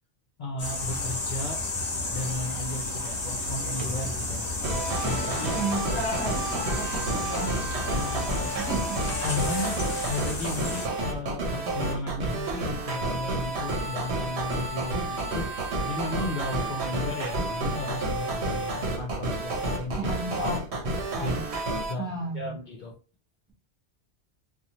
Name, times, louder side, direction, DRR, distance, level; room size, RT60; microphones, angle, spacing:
voice 1, 0.4-1.6 2.1-4.6 5.0-5.6 5.9-6.0 7.9-8.6 9.2-20.4 21.2-21.5 21.9-22.0 22.3-23.0, left 2 dB, 55° left, 0 dB, 0.6 m, -35 dB
sound 1, 0.6-10.9, left 2 dB, 40° left, 0.9 m, -32 dB
sound 2, 0.8-7.8, left 1 dB, 40° right, 0.6 m, -44 dB
sound 3, 4.6-21.9, right 2 dB, 75° right, 1.1 m, -30 dB
voice 2, 5.5-7.6 8.6-9.3 20.0-20.6 21.2-21.4 22.0-22.6, right 1 dB, 5° right, -2 dB, 0.9 m, -33 dB
2.7 x 2.4 x 2.9 m, 0.33 s
omnidirectional pair, 1.1 m